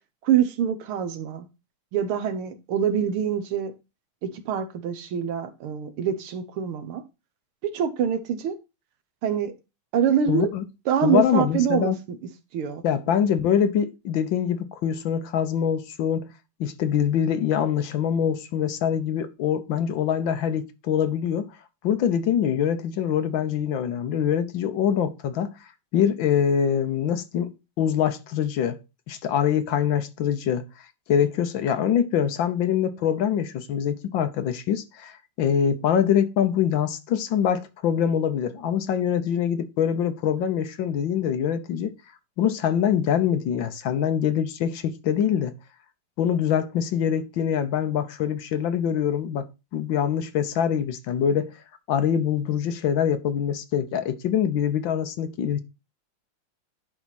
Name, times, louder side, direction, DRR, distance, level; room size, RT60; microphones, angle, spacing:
voice 1, 0.2-1.5 1.9-3.7 4.2-7.0 7.7-8.6 9.2-9.5 9.9-10.5 10.9-12.2 12.5-12.8, right 8 dB, 80° right, 1.9 m, -25 dB
voice 2, 10.3-10.6 11.0-12.0 12.8-16.3 16.6-21.5 21.8-25.5 25.9-27.5 27.8-28.8 29.1-30.6 31.1-41.9 42.4-45.5 46.2-49.5 49.7-51.5 51.9-55.6, left 8 dB, 70° left, 1.5 m, -24 dB
10.5 x 4.6 x 4.1 m
omnidirectional pair, 2.4 m